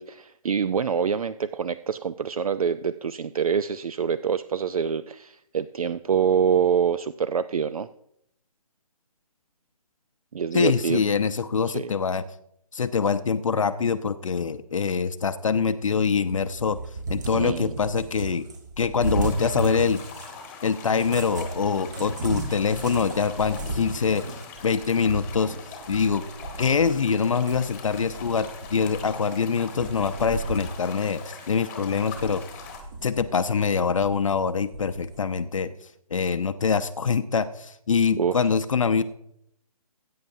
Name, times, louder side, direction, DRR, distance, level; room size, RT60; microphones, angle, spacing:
voice 1, 0.0-7.9 10.3-11.0 11.7-11.9 17.3-17.7 38.2-38.4, right 7 dB, 65° right, 13 dB, 0.5 m, -25 dB
voice 2, 10.5-12.2 12.7-16.8 17.1-18.5 18.8-20.0 20.6-24.2 24.6-25.6 25.9-26.2 26.6-32.4 33.0-35.7 36.1-39.0, left 6 dB, 55° left, 10 dB, 0.6 m, -24 dB
Cat, 16.1-20.4 20.9-27.1 27.5-29.3 29.7-30.8 31.2-31.3 31.8-33.4 34.0-35.2, right 3 dB, 30° right, 1.2 m, -35 dB
sound 1, 19.0-32.8, left 5 dB, 10° left, 1.3 m, -42 dB
19.5 x 9.5 x 2.7 m, 0.74 s
hypercardioid pair, 165°, 20 cm